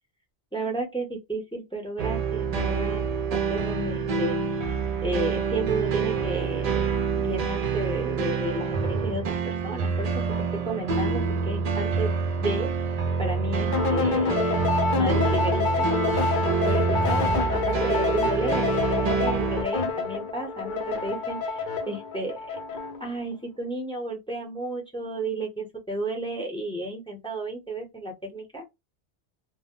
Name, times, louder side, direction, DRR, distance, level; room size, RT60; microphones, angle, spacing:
voice 1, 0.5-12.7 13.2-14.6 15.0-15.9 16.6-22.6 23.0-28.6, right 2 dB, 5° left, 0.6 m, -33 dB
sound 1, 2.0-19.6, right 5 dB, 50° right, 0.5 m, -27 dB
sound 2, 13.7-23.1, left 4 dB, 55° left, 0.7 m, -27 dB
2.1 x 2.0 x 3.5 m
omnidirectional pair, 1.1 m